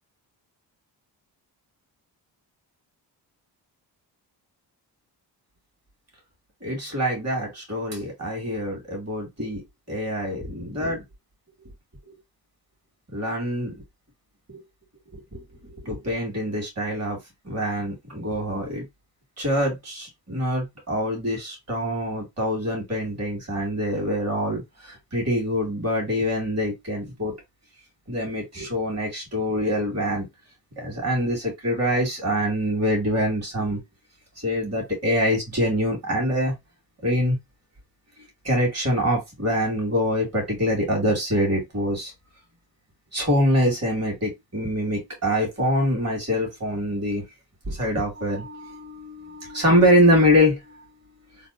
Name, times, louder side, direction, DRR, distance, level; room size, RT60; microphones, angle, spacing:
voice 1, 6.6-9.6 9.9-11.0 13.1-13.8 14.5-14.6 15.1-15.4 15.8-17.2 17.4-18.8 19.4-27.4 28.1-30.3 30.8-33.8 34.4-36.5 37.0-37.4 38.4-42.1 43.1-47.2 47.7-50.6, equal, 35° right, 2.1 m, -24 dB
3.4 x 2.4 x 2.5 m
cardioid pair, 75°, 43 cm